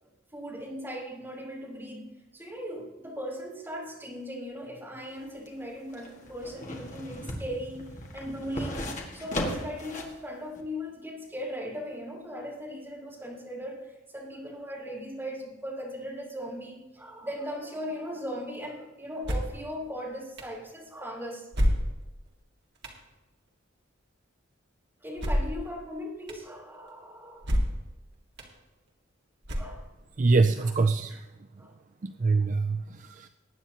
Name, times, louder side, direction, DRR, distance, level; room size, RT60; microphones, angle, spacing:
voice 1, 0.0-2.1 2.3-21.5 25.0-27.6 29.6-29.9 31.1-31.2 31.6-31.7, equal, 10° right, -5 dB, 4.0 m, -38 dB
sound 1, 5.1-10.2 10.6-10.7, left 1 dB, 40° left, 1.9 m, -37 dB
sound 2, 19.2-19.6 20.4-20.5 21.5-22.2 22.8-23.0 25.2-25.6 26.3-26.4 27.4-27.9 28.4-28.5 29.4-30.0, equal, 60° right, 1.9 m, -28 dB
voice 2, 30.2-31.3 32.0-33.3, right 3 dB, 40° right, 8 dB, 0.4 m, -24 dB
20.0 x 9.4 x 2.9 m, 1.1 s
head